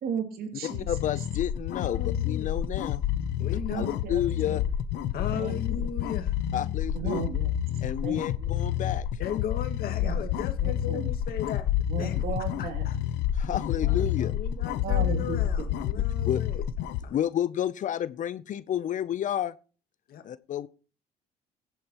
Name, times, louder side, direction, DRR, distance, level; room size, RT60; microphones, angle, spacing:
voice 1, 0.0-0.8 3.7-4.6 5.3-5.9 6.9-7.5 8.0-8.5 10.0-10.2 10.6-11.1 11.9-12.8 14.8-15.7, right 6 dB, 65° right, 2.7 m, -35 dB
sound 1, 0.6-17.0, left 11 dB, 85° left, 0.7 m, -29 dB
voice 2, 0.9-3.0 3.7-4.6 6.5-7.2 7.8-9.1 13.4-14.3 15.9-16.6 17.1-19.5 20.2-20.7, left 10 dB, 50° left, 0.5 m, -31 dB
voice 3, 1.7-2.6 3.4-3.9 5.1-6.4 9.2-11.7 12.0-12.2 12.6-13.0 13.7-16.6 17.0-17.2 20.1-20.2, left 9 dB, 65° left, 1.9 m, -37 dB
16.5 x 9.2 x 3.0 m
cardioid pair, 110°, 17 cm